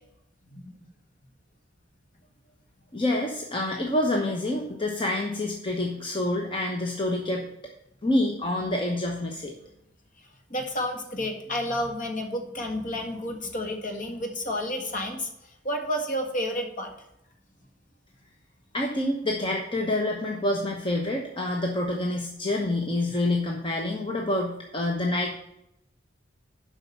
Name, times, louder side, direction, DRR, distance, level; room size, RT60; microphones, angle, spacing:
voice 1, 0.5-0.9 10.5-15.3 15.6-16.9, left 1 dB, 45° left, 3 dB, 1.8 m, -30 dB
voice 2, 2.9-7.5 8.0-9.5 18.7-25.4, left 1 dB, 25° left, 1 dB, 1.0 m, -27 dB
7.7 x 5.9 x 7.3 m, 0.80 s
head